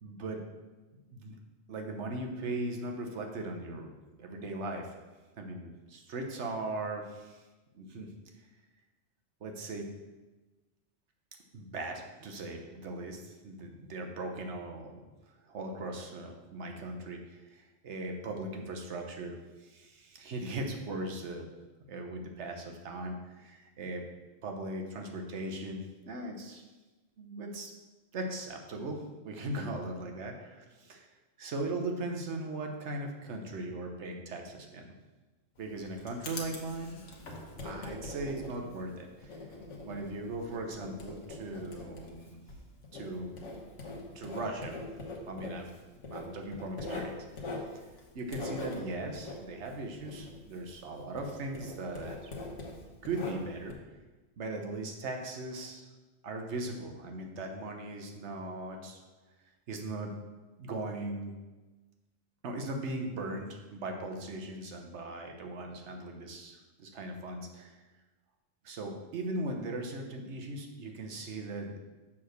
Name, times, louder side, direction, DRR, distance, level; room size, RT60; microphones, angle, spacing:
voice 1, 0.0-0.4 1.1-1.4 1.7-3.9 4.2-4.9 5.3-7.4 7.7-8.5 9.4-9.9 11.5-15.0 15.4-21.5 21.9-24.0 24.4-26.6 27.2-27.7 28.1-31.1 31.4-34.8 35.6-37.0 37.6-39.5 39.8-42.4 42.9-43.3 44.1-44.8 45.3-45.7 46.1-47.5 47.7-47.8 48.1-52.3 53.0-53.9 54.4-55.8 56.2-59.0 59.7-60.2 60.6-61.3 62.4-67.8 68.6-71.8, right 2 dB, 65° right, 3 dB, 1.2 m, -39 dB
Writing, 35.6-50.9 51.2-53.7, left 2 dB, 70° left, 1.5 m, -43 dB
7.1 x 3.7 x 6.4 m, 1.2 s
omnidirectional pair, 1.3 m